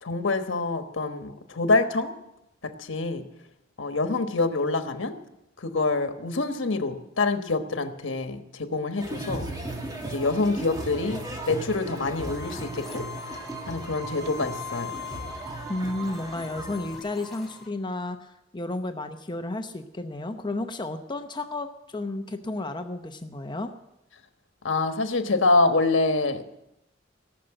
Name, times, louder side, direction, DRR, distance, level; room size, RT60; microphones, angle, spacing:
voice 1, 0.0-2.1 2.6-3.2 3.8-5.1 5.6-9.5 10.1-13.0 13.7-15.0 24.6-26.4, left 3 dB, 85° left, 7 dB, 1.3 m, -26 dB
sound 1, 9.0-17.0, right 1 dB, 20° right, 1.7 m, -37 dB
sound 2, 12.2-17.7, left 3 dB, ahead, 3.0 m, -41 dB
voice 2, 15.7-23.7, left 2 dB, 25° left, 7 dB, 0.8 m, -32 dB
17.5 x 6.7 x 8.9 m, 0.87 s
head